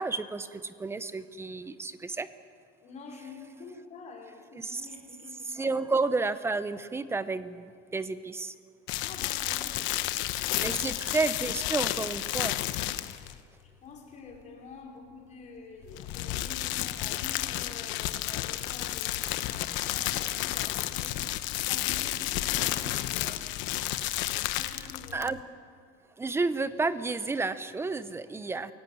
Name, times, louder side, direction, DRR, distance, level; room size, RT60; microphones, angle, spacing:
voice 1, 0.0-2.3 4.5-4.8 5.5-8.5 10.4-12.6 25.1-25.4 26.2-28.7, right 3 dB, 10° right, 14 dB, 0.7 m, -31 dB
voice 2, 2.8-5.7 9.0-10.0 10.5-10.8 13.8-23.4 24.5-25.3, left 4 dB, 35° left, -1 dB, 5.1 m, -47 dB
sound 1, 8.9-13.4 15.8-25.4, left 15 dB, 65° left, 1.0 m, -31 dB
21.5 x 17.0 x 9.4 m, 2.3 s
cardioid pair, 155°, 21 cm